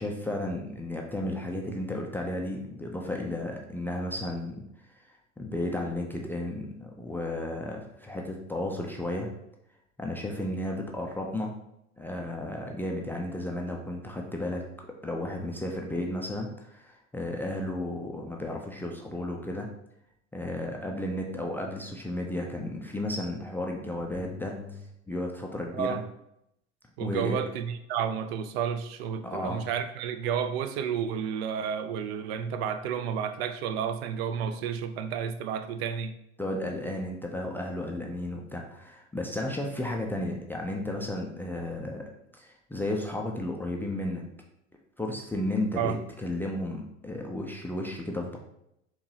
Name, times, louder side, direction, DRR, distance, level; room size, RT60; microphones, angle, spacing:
voice 1, 0.0-4.6 5.1-9.3 10.0-11.5 12.0-14.7 15.0-19.7 20.3-26.0 27.0-27.4 29.2-29.7 36.4-42.1 42.4-44.2 45.0-48.4, left 1 dB, 5° left, 0 dB, 0.3 m, -33 dB
voice 2, 27.0-36.1 45.8-46.0, right 7 dB, 60° right, 9 dB, 0.5 m, -31 dB
4.5 x 2.9 x 2.7 m, 0.80 s
hypercardioid pair, 75°, 35 cm